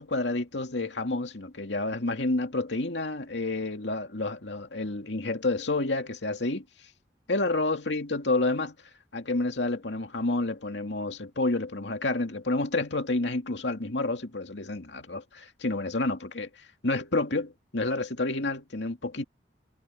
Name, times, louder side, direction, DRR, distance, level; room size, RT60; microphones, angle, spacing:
voice 1, 0.0-6.6 7.3-8.7 9.1-16.5 16.8-19.2, left 2 dB, 90° left, 2.3 m, -29 dB
head